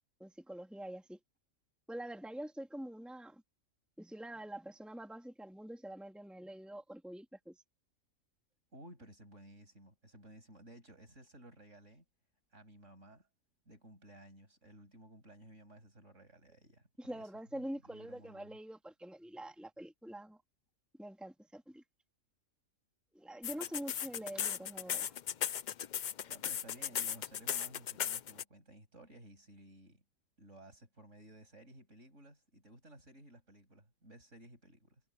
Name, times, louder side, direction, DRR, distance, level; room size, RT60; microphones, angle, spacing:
voice 1, 0.2-1.2 1.9-3.4 4.0-7.6 17.0-20.4 21.0-21.8 23.1-25.1, right 1 dB, ahead, 2.4 m, -45 dB
voice 2, 8.7-12.0 12.5-13.3 13.7-18.6 26.3-30.0 30.4-35.0, right 1 dB, 60° right, 8.1 m, -56 dB
sound 1, 23.4-28.4, left 9 dB, 65° left, 0.4 m, -36 dB
omnidirectional pair, 1.4 m